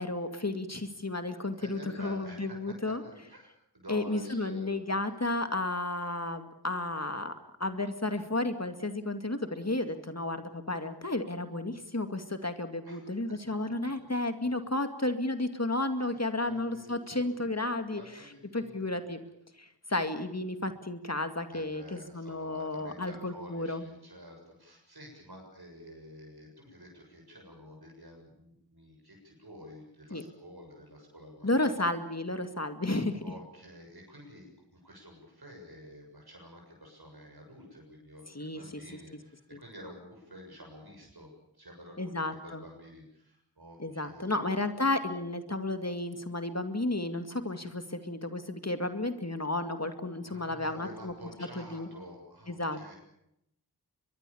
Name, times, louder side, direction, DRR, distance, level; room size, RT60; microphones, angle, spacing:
voice 1, 0.0-3.0 3.9-7.3 7.6-18.0 18.5-19.2 19.6-23.8 30.1-30.2 31.4-33.2 38.3-38.6 39.5-39.6 42.0-42.6 43.8-51.1 51.6-51.9 52.5-52.9, left 2 dB, 40° left, 8 dB, 2.2 m, -32 dB
voice 2, 1.5-3.5 3.7-4.8 5.1-5.2 12.8-13.3 16.0-17.6 17.9-19.0 21.5-31.7 33.2-44.4 50.2-53.0, equal, 65° right, 0 dB, 7.1 m, -50 dB
23.5 x 22.5 x 7.1 m, 0.81 s
wide cardioid pair, 45°, 40 cm